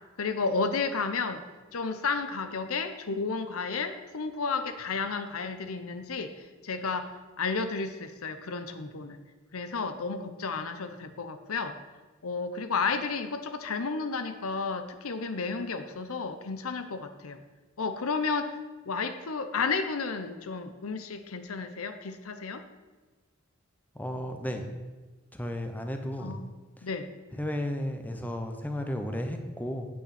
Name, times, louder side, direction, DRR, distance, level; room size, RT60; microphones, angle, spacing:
voice 1, 0.2-1.4 1.7-6.3 6.6-7.1 7.4-9.2 9.5-11.8 12.2-17.4 17.8-18.6 18.9-22.6 26.2-26.5 26.8-27.1, left 4 dB, 85° left, 9 dB, 0.8 m, -32 dB
voice 2, 23.9-24.7 25.3-26.4 26.8-26.9 27.3-29.9, left 1 dB, 10° left, 4 dB, 0.8 m, -33 dB
8.6 x 8.6 x 4.3 m, 1.3 s
head